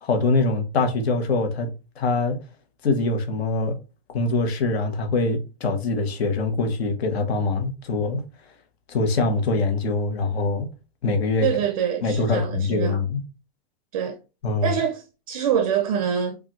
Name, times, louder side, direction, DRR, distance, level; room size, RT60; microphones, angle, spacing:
voice 1, 0.0-1.7 2.0-2.4 2.8-3.8 4.1-8.2 8.9-10.7 11.0-11.5 12.0-13.2 14.4-14.7, left 3 dB, 75° left, 1.3 m, -23 dB
voice 2, 11.4-13.0 13.9-14.2 14.6-16.4, right 8 dB, 35° right, 0.4 m, -25 dB
5.3 x 2.6 x 3.0 m
supercardioid pair, 170°, 32 cm